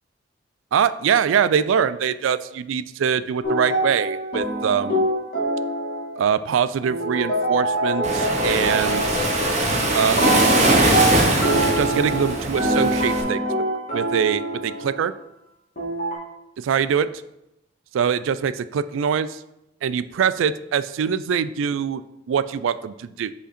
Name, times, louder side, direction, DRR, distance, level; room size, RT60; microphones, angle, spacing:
voice 1, 0.7-5.0 6.2-9.3 9.9-10.6 11.8-13.5 13.9-15.1 16.6-17.1 17.9-19.4 19.8-22.0 22.3-23.3, right 7 dB, 85° right, 15 dB, 0.3 m, -23 dB
sound 1, 3.4-6.4 6.8-9.8 10.2-15.1 15.8-16.2, right 1 dB, 50° left, 2.0 m, -24 dB
Waves surf, 8.0-13.2, right 1 dB, 35° right, 1.0 m, -21 dB
5.3 x 5.1 x 4.2 m, 0.88 s
head